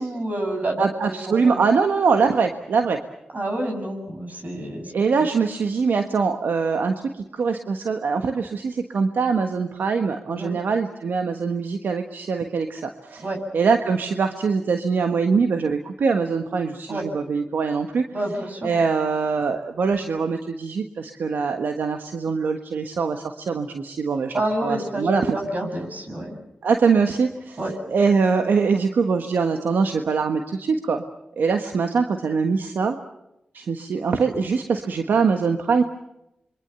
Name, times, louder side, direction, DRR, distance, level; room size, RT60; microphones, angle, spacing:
voice 1, 0.0-1.6 3.3-4.9 10.3-10.6 13.2-13.4 16.9-17.0 18.1-18.8 24.3-26.4 27.6-27.7, right 1 dB, 55° right, 4 dB, 7.5 m, -28 dB
voice 2, 0.8-3.0 4.9-13.2 13.5-18.0 18.6-25.4 26.6-27.6 27.9-31.0 31.4-32.9 33.5-35.8, right 5 dB, 85° right, 6 dB, 1.4 m, -23 dB
27.0 x 23.5 x 6.9 m, 0.86 s
cardioid pair, 40°, 3 cm